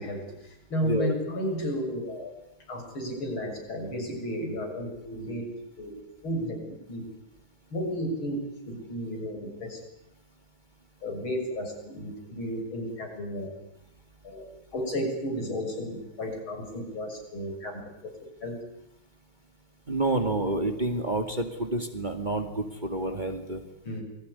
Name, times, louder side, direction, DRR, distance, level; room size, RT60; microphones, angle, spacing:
voice 1, 0.0-2.3 2.7-5.4 5.8-5.9 6.2-7.1 7.7-9.8 11.0-13.5 14.2-14.5 14.7-17.8 18.4-18.6 23.8-24.0, equal, 75° left, 3 dB, 7.7 m, -33 dB
voice 2, 0.8-1.2 19.9-23.6, right 2 dB, 20° right, 5 dB, 2.3 m, -29 dB
28.0 x 21.5 x 9.8 m, 0.90 s
omnidirectional pair, 2.3 m